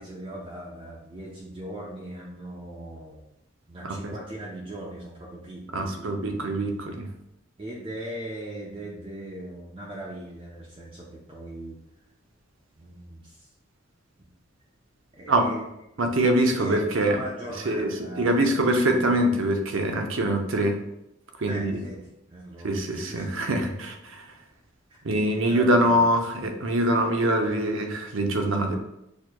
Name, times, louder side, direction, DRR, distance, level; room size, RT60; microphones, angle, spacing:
voice 1, 0.0-3.2 3.7-6.7 7.6-11.8 12.8-13.5 15.1-15.7 16.4-19.2 21.5-23.4 24.9-25.0 25.3-26.1, right 1 dB, 25° right, -4 dB, 0.6 m, -39 dB
voice 2, 3.8-4.1 5.7-7.1 15.3-15.5 16.0-17.2 17.7-20.8 21.4-21.8 22.6-24.3 25.0-28.8, right 1 dB, 75° right, 4 dB, 0.7 m, -24 dB
6.4 x 3.0 x 2.3 m, 0.84 s
head